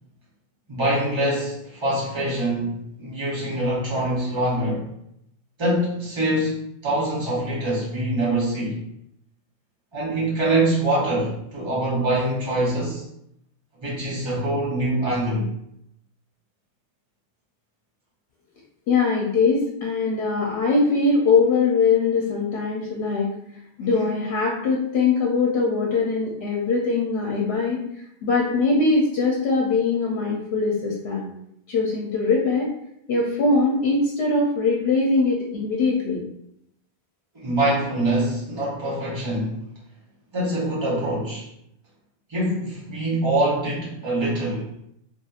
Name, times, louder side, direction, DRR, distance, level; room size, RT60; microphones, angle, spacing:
voice 1, 0.7-4.9 5.6-8.8 9.9-13.0 13.8-15.5 37.3-39.6 40.3-41.5 42.3-44.7, right 1 dB, 30° right, -7 dB, 1.0 m, -24 dB
voice 2, 18.9-23.3 23.8-27.8 28.2-31.2 31.7-32.7 33.1-36.2, left 4 dB, 80° left, -2 dB, 0.8 m, -21 dB
2.8 x 2.4 x 2.3 m, 0.76 s
omnidirectional pair, 1.0 m